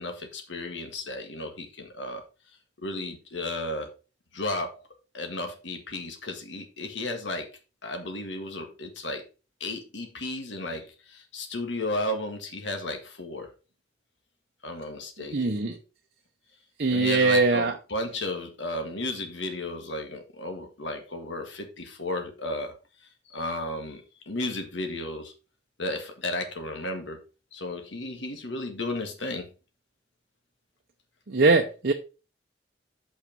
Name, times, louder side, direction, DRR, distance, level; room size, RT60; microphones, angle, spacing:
voice 1, 0.0-2.2 2.8-3.9 4.3-4.8 5.1-7.5 7.8-9.2 9.6-13.5 14.6-15.5 16.9-22.8 23.3-25.3 25.8-27.2 27.5-29.5, left 2 dB, 70° left, 5 dB, 1.7 m, -34 dB
voice 2, 15.3-15.8 16.8-17.8 31.3-31.9, right 3 dB, 55° right, 4 dB, 0.8 m, -22 dB
6.6 x 5.7 x 5.2 m, 0.33 s
head